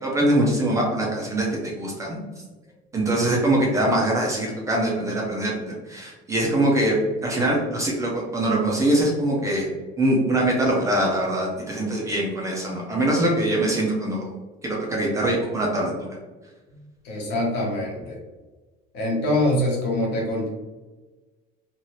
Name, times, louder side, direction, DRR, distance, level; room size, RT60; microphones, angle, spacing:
voice 1, 0.0-2.2 2.9-9.7 10.0-14.3 14.6-15.9, right 1 dB, 15° right, -3 dB, 0.4 m, -23 dB
voice 2, 16.7-18.2 18.9-20.5, left 1 dB, 60° left, -2 dB, 1.0 m, -24 dB
2.7 x 2.4 x 3.0 m, 1.2 s
cardioid pair, 180°, 21 cm